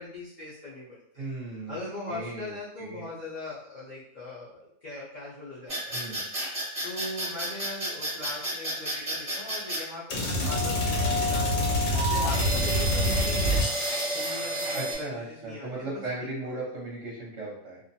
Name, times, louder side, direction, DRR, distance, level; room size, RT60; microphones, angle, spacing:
voice 1, 0.0-1.2 1.7-6.0 6.8-11.7 12.1-16.6, left 2 dB, 55° left, -9 dB, 0.5 m, -40 dB
voice 2, 1.2-1.8 2.1-3.1 5.9-6.2 14.7-17.8, right 2 dB, 60° right, -5 dB, 1.0 m, -37 dB
sound 1, 5.7-9.8 10.4-15.0, equal, 35° right, 0.9 m, -31 dB
sound 2, 10.1-14.5, left 1 dB, 80° left, 1.2 m, -27 dB
2.6 x 2.2 x 2.6 m, 0.72 s
omnidirectional pair, 1.5 m